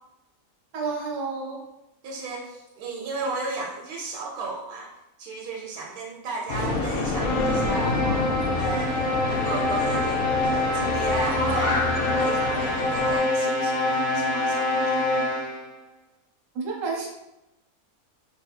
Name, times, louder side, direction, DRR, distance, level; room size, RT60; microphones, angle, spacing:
voice 1, 0.7-1.6 16.5-17.1, right 4 dB, 65° right, -1 dB, 1.2 m, -30 dB
voice 2, 2.0-4.9 5.2-15.1, right 3 dB, 85° right, -1 dB, 1.1 m, -34 dB
sound 1, 6.5-13.2, left 3 dB, 70° left, 0.5 m, -28 dB
sound 2, 7.2-15.7, left 2 dB, 45° left, 1.6 m, -26 dB
4.4 x 2.7 x 2.2 m, 0.93 s
omnidirectional pair, 1.5 m